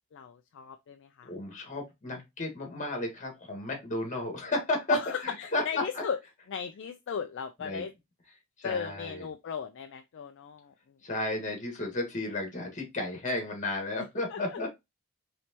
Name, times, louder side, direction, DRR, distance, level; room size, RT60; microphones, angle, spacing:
voice 1, 0.1-1.3 4.9-6.2 6.5-7.9 8.6-10.7 14.3-14.6, left 7 dB, 55° left, 0.4 m, -36 dB
voice 2, 1.2-6.0 7.6-7.9 8.6-9.3 11.0-14.7, left 2 dB, 35° left, 1.6 m, -33 dB
4.4 x 3.2 x 2.9 m
head